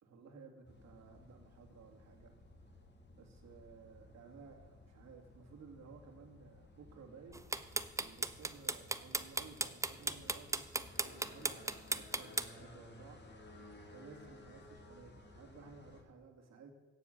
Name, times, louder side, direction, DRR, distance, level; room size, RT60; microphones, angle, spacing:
voice 1, 0.0-2.4 3.1-7.7 8.0-13.3 13.9-16.7, right 5 dB, 60° right, 3 dB, 2.6 m, -56 dB
sound 1, 0.7-16.0, left 2 dB, 35° left, 2.8 m, -57 dB
sound 2, 7.3-12.4, right 2 dB, 10° right, 0.6 m, -35 dB
16.5 x 7.6 x 6.7 m, 1.2 s
cardioid pair, 90°, 30 cm